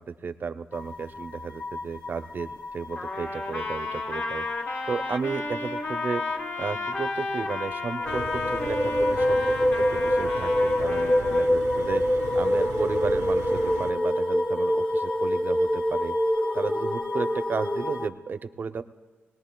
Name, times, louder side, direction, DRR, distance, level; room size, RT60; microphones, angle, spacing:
voice 1, 0.0-4.4 4.9-6.2 6.6-9.4 9.8-12.0 12.3-16.2 16.5-18.8, right 5 dB, 45° right, 11 dB, 0.5 m, -33 dB
sound 1, 0.7-18.1, left 1 dB, 25° left, 0.7 m, -27 dB
Trumpet, 3.0-11.5, left 3 dB, 45° left, 1.1 m, -33 dB
sound 2, 8.1-13.9, right 6 dB, 85° right, 0.6 m, -38 dB
20.5 x 18.5 x 2.2 m, 1.4 s
cardioid pair, 95°, 5 cm